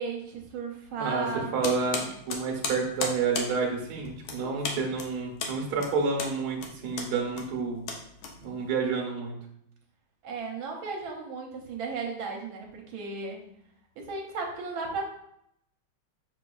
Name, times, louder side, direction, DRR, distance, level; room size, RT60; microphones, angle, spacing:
voice 1, 0.0-1.6 4.3-4.6 10.2-13.4 14.0-15.0, right 4 dB, 80° right, 1 dB, 1.5 m, -35 dB
voice 2, 0.9-7.8 8.4-9.4, right 4 dB, 55° right, 0 dB, 1.3 m, -29 dB
sound 1, 1.6-8.8, left 4 dB, 85° left, 1.5 m, -36 dB
5.9 x 3.7 x 2.3 m, 0.75 s
omnidirectional pair, 2.2 m